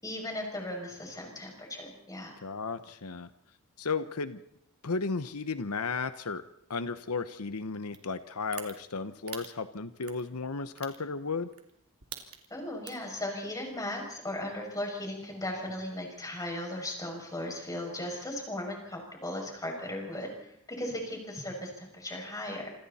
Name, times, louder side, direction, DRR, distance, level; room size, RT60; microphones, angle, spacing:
voice 1, 0.0-2.3 12.5-22.7, left 1 dB, 15° left, 1 dB, 6.8 m, -37 dB
voice 2, 2.4-3.3 3.8-4.4 4.8-6.4 6.7-11.5, left 4 dB, 90° left, 11 dB, 1.0 m, -34 dB
sound 1, 7.9-8.0 8.5-8.7 9.3-9.5 10.0-10.2 10.8-11.0 11.5-11.7 12.0-12.5 12.9-13.1, right 11 dB, 85° right, 3.1 m, -41 dB
27.5 x 26.0 x 4.3 m, 0.75 s
head